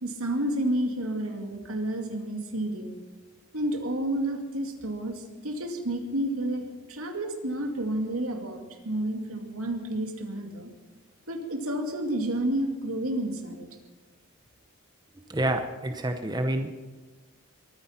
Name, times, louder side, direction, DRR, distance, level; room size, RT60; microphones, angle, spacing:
voice 1, 0.0-3.0 3.5-10.7 11.3-13.7, right 1 dB, 85° right, 4 dB, 2.3 m, -30 dB
voice 2, 15.3-16.8, right 1 dB, 20° right, 6 dB, 0.7 m, -28 dB
22.0 x 10.0 x 5.8 m, 1.3 s
head